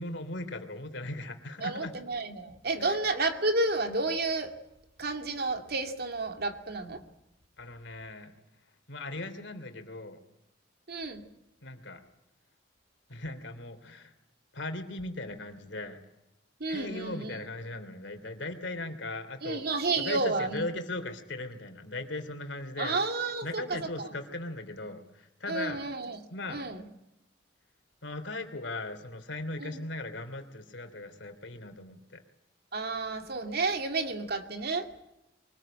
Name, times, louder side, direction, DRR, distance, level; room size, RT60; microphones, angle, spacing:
voice 1, 0.0-2.0 2.8-3.0 7.6-8.3 8.9-10.2 11.6-12.0 13.1-14.1 14.5-16.0 16.7-23.0 23.4-25.8 26.3-26.6 28.0-32.2, left 2 dB, 70° left, 8 dB, 3.0 m, -38 dB
voice 2, 1.6-4.5 5.0-7.0 10.9-11.2 16.6-17.3 19.4-20.6 22.8-24.1 25.5-26.2 26.5-26.8 29.6-29.7 32.7-35.0, right 3 dB, 55° right, 6 dB, 2.3 m, -31 dB
24.0 x 20.0 x 8.9 m, 0.89 s
head